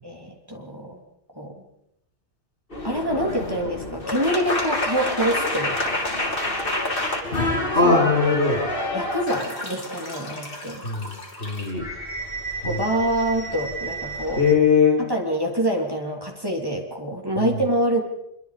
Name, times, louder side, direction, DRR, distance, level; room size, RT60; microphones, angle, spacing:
voice 1, 0.0-1.0 1.3-1.6 2.8-6.0 7.8-8.0 8.9-10.8 12.6-14.4 15.0-18.0, right 1 dB, 20° right, 1 dB, 3.3 m, -26 dB
sound 1, 2.7-14.5, left 1 dB, 50° left, 3.5 m, -28 dB
voice 2, 7.7-8.7 10.8-11.8 12.6-12.8 14.4-15.0 17.3-17.5, left 5 dB, 75° left, 1 dB, 5.3 m, -20 dB
25.0 x 23.5 x 5.1 m, 0.79 s
omnidirectional pair, 1.2 m